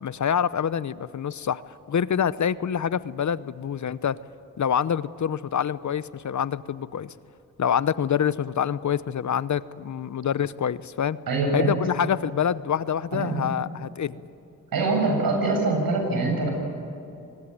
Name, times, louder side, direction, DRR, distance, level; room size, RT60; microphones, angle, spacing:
voice 1, 0.0-4.2 4.6-7.1 7.6-11.2 11.5-14.2, left 8 dB, 55° left, 17 dB, 0.9 m, -26 dB
voice 2, 11.3-11.8 13.1-13.4 14.7-16.5, right 3 dB, 75° right, 1 dB, 7.8 m, -24 dB
25.0 x 20.5 x 9.4 m, 2.8 s
cardioid pair, 55°, 35 cm